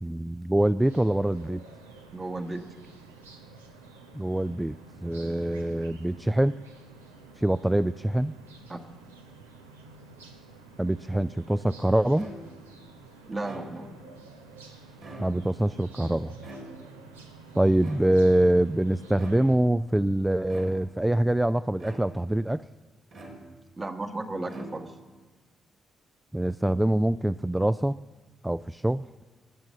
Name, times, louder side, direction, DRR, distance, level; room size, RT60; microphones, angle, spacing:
voice 1, 0.0-1.6 4.1-6.5 7.4-8.3 10.8-12.3 15.2-16.4 17.5-22.6 26.3-27.9 28.4-29.0, right 1 dB, 10° right, 14 dB, 0.3 m, -24 dB
sound 1, 0.8-19.6, right 3 dB, 90° right, 0.8 m, -50 dB
voice 2, 2.1-2.7 8.7-8.8 13.3-13.9 23.8-24.9, right 2 dB, 30° right, 6 dB, 1.4 m, -34 dB
sound 2, 12.2-12.7 13.3-14.1 14.9-15.7 16.4-17.1 17.8-18.5 19.1-19.7 20.5-21.1 21.8-22.4 23.1-23.8 24.4-25.2, right 1 dB, 60° right, 2.7 m, -45 dB
19.5 x 7.3 x 6.4 m, 1.3 s
hypercardioid pair, 40°, 0 cm